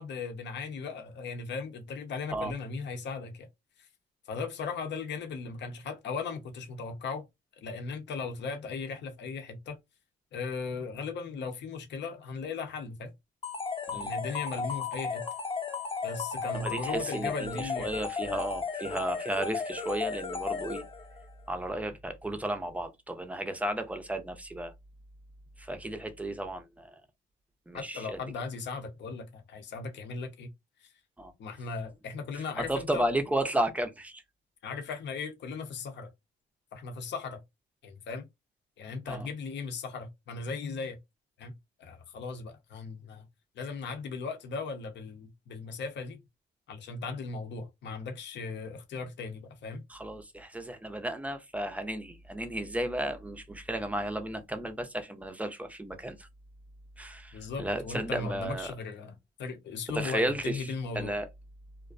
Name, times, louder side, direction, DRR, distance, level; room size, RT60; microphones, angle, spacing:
voice 1, 0.0-3.5 3.8-3.9 4.3-7.3 7.6-9.8 10.3-13.1 13.9-15.2 16.0-18.0 27.7-30.5 31.4-33.0 34.6-36.1 36.7-37.4 37.8-38.3 38.8-41.0 41.4-41.5 41.8-43.3 43.6-46.2 46.7-49.8 57.3-61.1, left 4 dB, 65° left, 0.7 m, -37 dB
sound 1, 13.4-21.2, left 5 dB, 25° left, 0.7 m, -35 dB
voice 2, 16.5-20.8 21.5-24.7 25.6-26.9 27.7-28.2 31.2-31.3 32.3-34.2 39.1-39.3 49.9-56.3 57.0-58.7 59.9-61.3, right 1 dB, 5° right, 0.5 m, -33 dB
2.4 x 2.1 x 2.4 m
cardioid pair, 90°, 20 cm